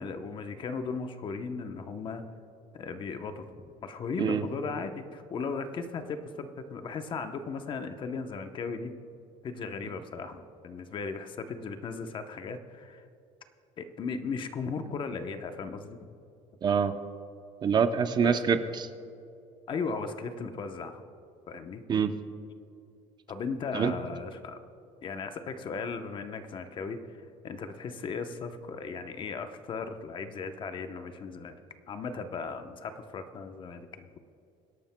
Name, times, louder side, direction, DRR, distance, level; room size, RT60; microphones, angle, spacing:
voice 1, 0.0-2.2 2.7-8.9 9.4-13.1 13.8-16.0 18.2-18.4 19.7-21.0 21.5-21.8 23.3-24.6 25.0-31.6 31.9-34.1, left 4 dB, 40° left, 8 dB, 0.8 m, -37 dB
voice 2, 16.6-17.0 17.6-18.9 21.9-22.1 23.7-23.9, right 6 dB, 35° right, 9 dB, 0.6 m, -25 dB
24.5 x 11.5 x 2.2 m, 2.6 s
cardioid pair, 135°, 13 cm